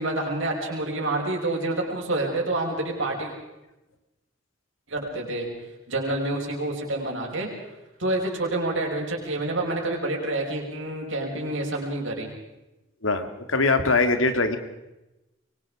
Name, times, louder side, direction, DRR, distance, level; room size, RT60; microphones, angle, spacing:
voice 1, 0.0-3.3 4.9-5.5 5.9-7.5 8.0-12.3, right 2 dB, 70° right, -1 dB, 5.6 m, -28 dB
voice 2, 13.0-14.6, left 3 dB, 80° left, 8 dB, 2.3 m, -22 dB
25.5 x 23.0 x 5.0 m, 0.99 s
head